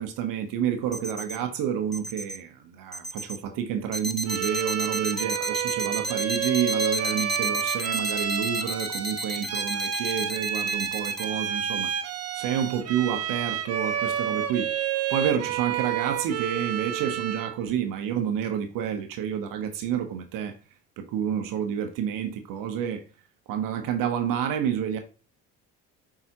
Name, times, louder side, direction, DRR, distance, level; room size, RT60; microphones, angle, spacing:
voice 1, 0.0-11.9 12.3-14.7 15.1-20.6 21.0-23.0 23.5-25.0, right 9 dB, 70° right, 1.0 m, -29 dB
sound 1, 0.9-1.4 1.9-2.4 2.9-3.4 3.9-11.3, equal, ahead, 0.7 m, -32 dB
Bowed string instrument, 4.2-17.6, right 8 dB, 45° right, 1.0 m, -30 dB
7.3 x 4.9 x 2.9 m
supercardioid pair, 75°, 34 cm